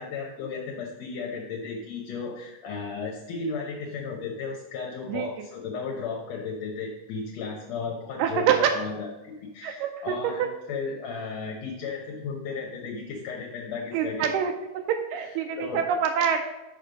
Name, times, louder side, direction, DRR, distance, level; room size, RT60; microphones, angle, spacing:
voice 1, 0.0-14.3 15.2-15.8, left 5 dB, 65° left, -1 dB, 1.9 m, -35 dB
voice 2, 8.2-8.8 9.6-10.5 13.9-16.4, right 8 dB, 85° right, 4 dB, 2.2 m, -26 dB
6.8 x 5.2 x 5.0 m, 1.0 s
omnidirectional pair, 3.8 m